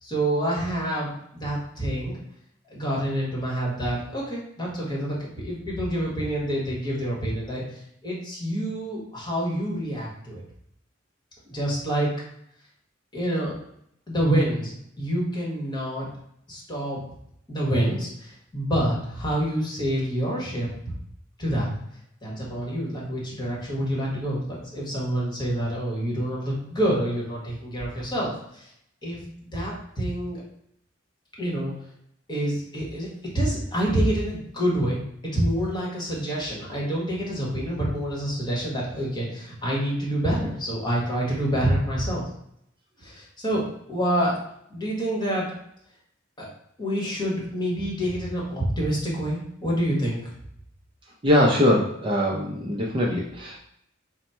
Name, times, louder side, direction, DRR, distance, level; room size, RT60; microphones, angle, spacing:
voice 1, 0.0-2.2 2.7-7.6 8.0-10.4 11.5-12.1 13.1-13.5 14.1-16.1 16.5-17.0 17.5-20.7 21.4-21.7 22.2-28.7 29.0-29.2 29.5-30.4 31.4-31.7 32.3-33.1 33.3-42.2 43.0-44.4 44.7-45.5 46.4-46.5 46.8-50.2, right 1 dB, 20° left, -5 dB, 1.3 m, -27 dB
voice 2, 51.2-53.6, left 1 dB, 25° right, -3 dB, 0.5 m, -22 dB
4.1 x 2.1 x 4.3 m, 0.72 s
head